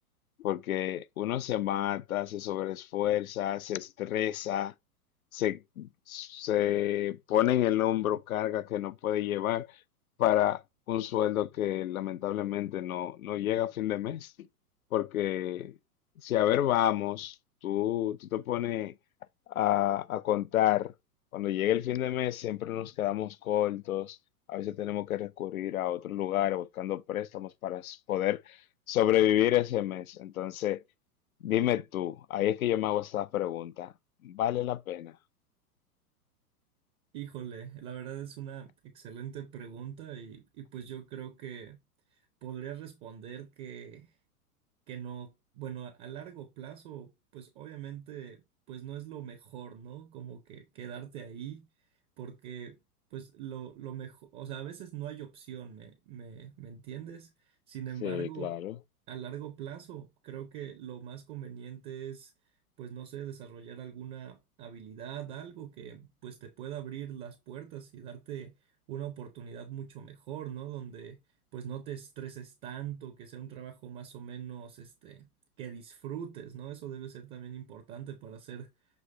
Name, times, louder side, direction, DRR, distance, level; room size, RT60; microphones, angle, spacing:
voice 1, 0.4-4.7 5.3-9.8 10.2-10.6 10.9-14.5 14.9-15.8 16.2-17.4 17.6-18.9 19.5-20.9 21.3-24.2 24.5-28.6 28.9-30.8 31.4-33.9 34.2-35.2 58.0-58.8, left 12 dB, 60° left, 0.6 m, -29 dB
voice 2, 37.1-41.8 42.1-44.1 44.9-51.7 52.2-52.8 53.1-58.6 59.1-62.3 62.8-68.5 68.9-71.2 71.5-75.3 75.6-78.7, right 9 dB, 20° right, 0.7 m, -42 dB
7.0 x 3.2 x 4.4 m
figure-of-eight pair, 105°, 47 cm